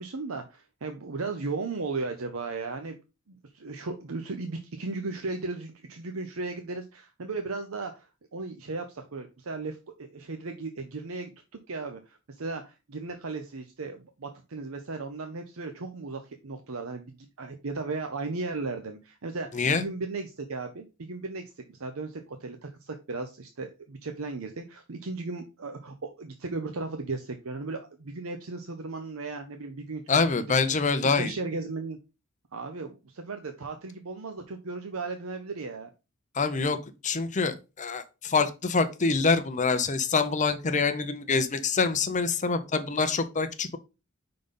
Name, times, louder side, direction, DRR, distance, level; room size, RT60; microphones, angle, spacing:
voice 1, 0.0-3.0 3.3-21.4 21.7-30.0 30.8-30.9 31.2-32.0 32.5-35.9, right 3 dB, 70° right, 6 dB, 0.7 m, -36 dB
voice 2, 19.5-19.9 30.1-31.3 36.3-36.8 37.0-43.8, left 4 dB, 35° left, 9 dB, 0.7 m, -25 dB
5.2 x 3.9 x 5.3 m, 0.28 s
head